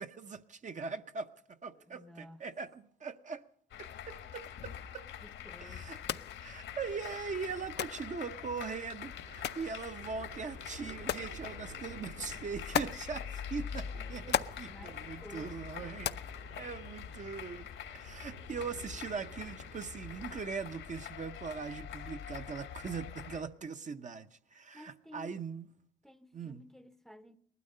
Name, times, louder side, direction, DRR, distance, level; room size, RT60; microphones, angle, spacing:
voice 1, 0.0-3.4 3.8-5.0 5.6-6.0 6.4-16.2 16.6-17.7 17.9-25.7 26.3-26.6, right 5 dB, 40° right, 0.7 m, -41 dB
voice 2, 1.8-2.4 5.2-6.2 14.2-14.4 14.7-16.3 24.7-25.4 26.0-27.4, equal, ahead, 0.7 m, -54 dB
sound 1, 3.7-23.4, left 8 dB, 75° left, 1.4 m, -45 dB
sound 2, 5.9-17.4, left 10 dB, 60° left, 0.5 m, -41 dB
sound 3, 9.2-20.4, right 4 dB, 85° right, 3.4 m, -55 dB
19.0 x 12.5 x 5.4 m
cardioid pair, 90°, 20 cm